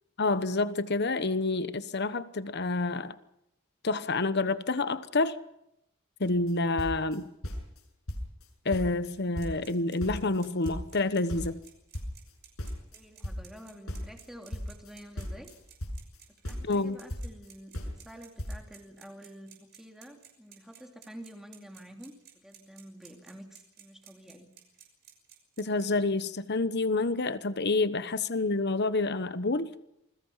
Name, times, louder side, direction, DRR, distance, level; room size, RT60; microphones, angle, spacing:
voice 1, 0.2-3.1 3.8-5.4 6.2-7.3 8.6-11.6 16.6-17.0 25.6-29.7, left 3 dB, 50° left, 1.1 m, -28 dB
sound 1, 6.2-6.5 6.8-7.8 8.1-8.5 8.7-10.4 10.6-13.6 13.9-16.2 16.4-17.5 17.7-18.1 18.4-18.6, equal, 75° left, 6.6 m, -37 dB
sound 2, 9.2-25.9, right 10 dB, 50° right, 6.1 m, -54 dB
voice 2, 12.9-15.5 16.4-24.5 28.1-28.2, equal, ahead, 3.1 m, -49 dB
28.5 x 21.5 x 5.7 m
head